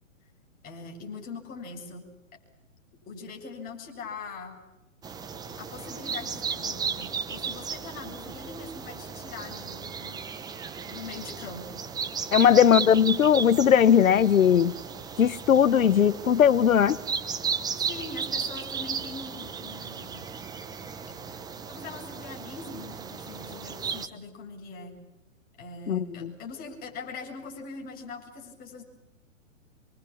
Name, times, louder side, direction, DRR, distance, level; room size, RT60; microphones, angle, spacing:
voice 1, 0.6-2.0 3.1-4.6 5.6-10.2 10.9-11.8 12.4-12.9 17.9-20.3 21.7-25.0 25.6-28.8, left 4 dB, 20° left, 2 dB, 7.3 m, -42 dB
sound 1, 5.0-24.1, right 6 dB, 10° right, 1.1 m, -35 dB
voice 2, 12.3-14.7 15.2-17.0 25.9-26.3, left 8 dB, 80° left, 15 dB, 1.2 m, -19 dB
27.0 x 24.0 x 8.7 m, 0.97 s
hypercardioid pair, 145°, 40 cm